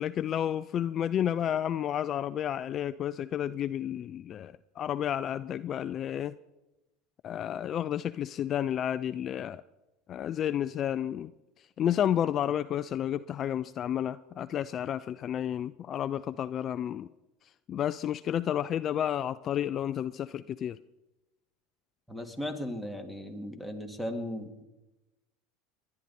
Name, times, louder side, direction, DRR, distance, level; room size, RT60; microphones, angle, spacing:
voice 1, 0.0-6.4 7.2-9.6 10.1-11.3 11.8-17.1 17.7-20.8, left 10 dB, 40° left, 15 dB, 0.4 m, -31 dB
voice 2, 22.1-24.6, left 1 dB, 5° right, 7 dB, 2.2 m, -37 dB
21.5 x 11.0 x 4.2 m, 1.0 s
hypercardioid pair, 95°, 0 cm